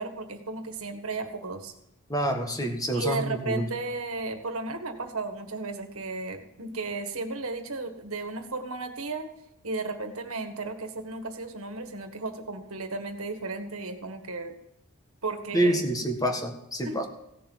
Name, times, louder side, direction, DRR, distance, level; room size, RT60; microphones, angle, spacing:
voice 1, 0.0-1.7 2.9-9.3 9.6-14.5 15.2-15.9 16.8-17.0, right 3 dB, 75° right, 6 dB, 1.7 m, -34 dB
voice 2, 2.1-3.7 15.5-17.0, right 1 dB, 15° left, 4 dB, 1.6 m, -27 dB
16.5 x 6.9 x 7.4 m, 0.83 s
head